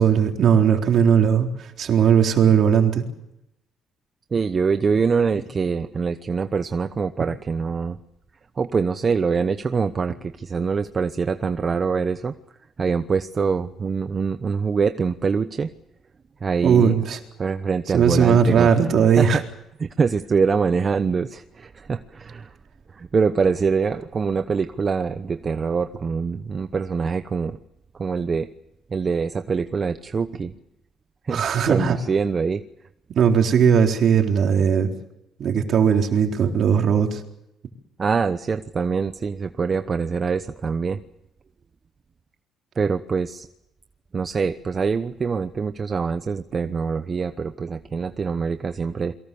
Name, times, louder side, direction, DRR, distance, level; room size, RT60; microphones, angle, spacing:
voice 1, 0.0-3.0 16.6-17.2 17.9-19.4 31.3-32.0 33.1-34.9 35.4-37.2, right 7 dB, 55° right, 3 dB, 3.9 m, -18 dB
voice 2, 4.3-8.0 8.6-12.3 12.8-15.7 16.4-17.0 17.4-18.7 19.2-19.4 19.8-22.6 22.9-27.6 27.9-28.5 28.9-30.5 31.2-32.6 38.0-41.0 42.8-43.5 44.1-49.1, right 5 dB, 30° right, 10 dB, 1.0 m, -24 dB
30.0 x 23.5 x 7.0 m, 0.83 s
cardioid pair, 125°, 0 cm